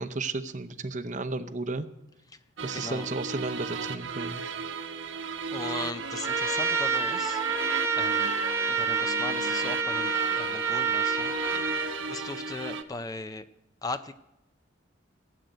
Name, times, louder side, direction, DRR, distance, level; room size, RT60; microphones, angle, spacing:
voice 1, 0.0-1.9 2.6-4.5, right 3 dB, 40° right, 11 dB, 0.7 m, -33 dB
sound 1, 2.6-12.8, right 4 dB, 70° right, 1.1 m, -36 dB
voice 2, 2.7-3.1 5.5-7.4 7.9-8.3 8.7-11.3 12.1-13.5 13.8-14.1, left 3 dB, 20° left, 11 dB, 0.5 m, -38 dB
Trumpet, 6.2-11.9, right 5 dB, 15° right, 0.9 m, -28 dB
15.5 x 7.8 x 9.3 m, 0.91 s
head